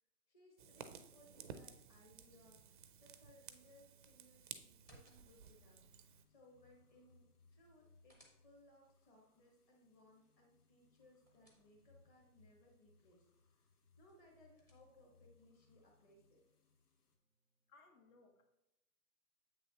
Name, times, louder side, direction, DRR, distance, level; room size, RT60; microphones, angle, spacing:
voice 1, 0.3-5.8 6.3-13.3 13.6-13.7 14.0-16.4, left 1 dB, 25° left, 0 dB, 1.2 m, -67 dB
Fire, 0.6-6.2, right 7 dB, 35° right, 0.4 m, -55 dB
sound 1, 4.7-5.6 7.6-8.9 10.8-12.1 14.1-15.2, equal, 10° left, 0.6 m, -72 dB
sound 2, 5.1-17.2, left 3 dB, 85° left, 1.4 m, -71 dB
voice 2, 17.7-18.4, left 3 dB, 65° left, 2 dB, 1.8 m, -65 dB
7.8 x 6.2 x 2.9 m, 0.89 s
hypercardioid pair, 155°, 45 cm